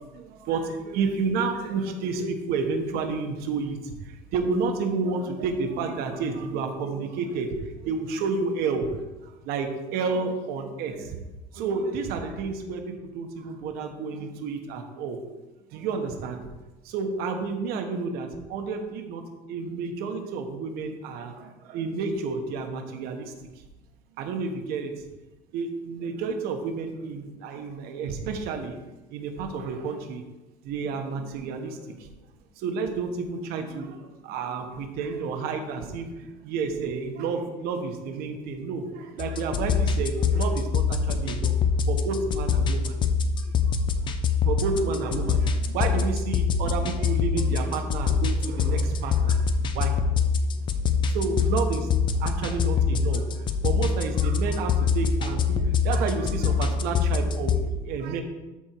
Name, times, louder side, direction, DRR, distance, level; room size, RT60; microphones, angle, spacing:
voice 1, 0.0-8.9 9.2-11.2 11.5-15.2 15.7-16.5 16.8-19.2 19.5-23.3 24.2-25.0 25.5-28.8 29.1-30.2 30.6-32.1 32.6-41.6 41.9-43.0 43.4-43.5 44.0-44.1 44.4-49.4 49.7-50.0 50.4-50.5 51.1-51.9 52.2-58.2, right 4 dB, 60° right, 5 dB, 1.3 m, -30 dB
sound 1, 39.2-57.6, left 5 dB, 25° left, 0.5 m, -25 dB
13.5 x 4.4 x 4.6 m, 1.1 s
cardioid pair, 170°, 18 cm